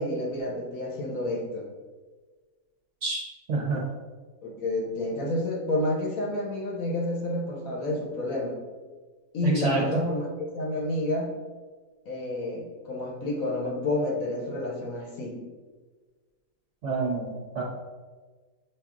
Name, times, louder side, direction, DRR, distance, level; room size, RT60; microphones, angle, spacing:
voice 1, 0.0-1.7 4.4-8.6 9.3-10.3 10.5-11.3 12.1-15.4, left 1 dB, 60° left, -1 dB, 1.0 m, -29 dB
voice 2, 3.5-3.8 9.4-10.0 16.8-17.6, right 3 dB, 60° right, -2 dB, 0.8 m, -28 dB
7.0 x 2.7 x 2.4 m, 1.4 s
omnidirectional pair, 1.8 m